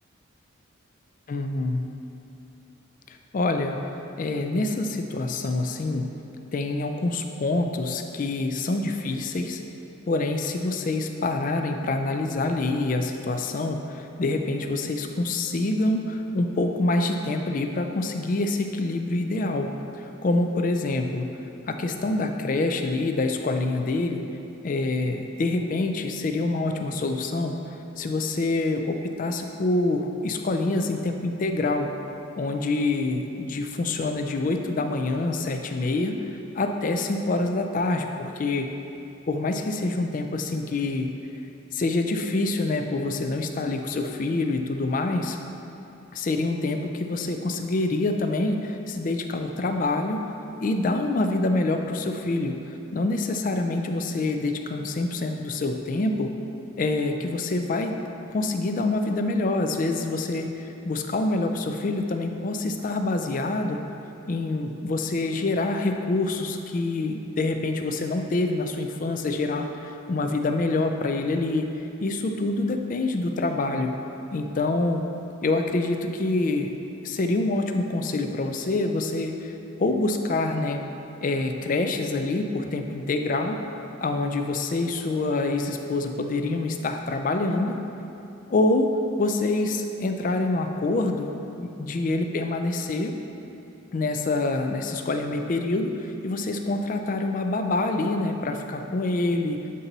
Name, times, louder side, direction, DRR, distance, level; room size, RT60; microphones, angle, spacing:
voice 1, 1.3-1.8 3.1-3.8 4.2-6.1 6.5-9.6 10.1-19.7 20.0-21.4 21.7-24.2 24.6-27.6 28.0-31.9 32.4-36.3 36.6-38.7 39.3-41.1 41.7-45.4 46.1-50.3 50.6-56.3 56.8-58.0 58.3-63.8 64.3-74.0 74.3-75.0 75.4-76.7 77.0-79.5 79.8-80.8 81.2-83.6 84.0-87.8 88.5-88.9 89.2-91.3 91.6-93.1 93.9-99.6, left 2 dB, 40° left, 5 dB, 0.3 m, -26 dB
7.5 x 4.0 x 4.0 m, 2.9 s
head